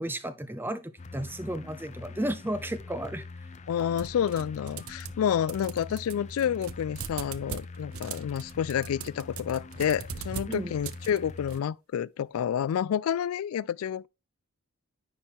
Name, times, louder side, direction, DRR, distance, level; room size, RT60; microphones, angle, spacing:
voice 1, 0.0-3.2 10.5-10.7, right 1 dB, 10° right, 0.6 m, -33 dB
sound 1, 1.0-11.6, left 3 dB, 35° left, 0.5 m, -44 dB
voice 2, 3.7-14.1, left 9 dB, 90° left, 0.3 m, -29 dB
sound 2, 4.0-5.2 5.5-11.6, right 8 dB, 85° right, 0.6 m, -41 dB
9.7 x 4.4 x 3.5 m
head